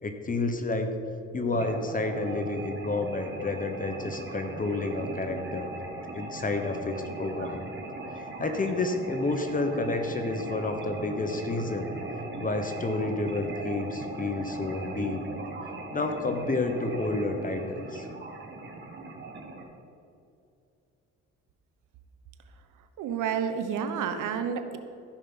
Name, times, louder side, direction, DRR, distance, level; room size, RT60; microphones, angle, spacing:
voice 1, 0.0-0.9 1.3-5.7 6.1-7.6 8.4-11.9 12.4-15.2 15.9-18.1, left 2 dB, 25° left, 6 dB, 1.1 m, -30 dB
sound 1, 1.5-19.6, right 3 dB, 40° right, 1.6 m, -39 dB
voice 2, 23.0-24.8, right 7 dB, 85° right, 8 dB, 1.0 m, -30 dB
14.5 x 5.6 x 5.6 m, 2.6 s
cardioid pair, 90°, 30 cm